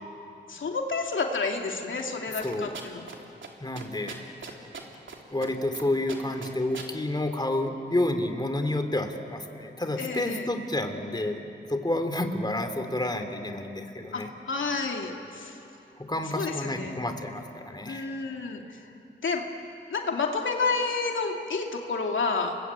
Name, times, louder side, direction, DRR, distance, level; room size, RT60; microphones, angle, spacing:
voice 1, 0.5-3.1 10.0-10.5 14.1-15.6 16.3-17.1 17.9-18.8 19.2-19.4 19.9-22.6, left 4 dB, 75° left, 2 dB, 2.6 m, -30 dB
voice 2, 2.4-2.8 3.6-4.2 5.3-11.4 11.7-14.3 16.1-18.1, left 1 dB, 20° left, 6 dB, 3.2 m, -29 dB
sound 1, 2.4-3.2 3.4-3.5 3.8-5.2 5.4-5.8 6.1-6.9, right 5 dB, 70° right, 3.4 m, -40 dB
30.0 x 22.0 x 8.9 m, 2.8 s
cardioid pair, 50°, 20 cm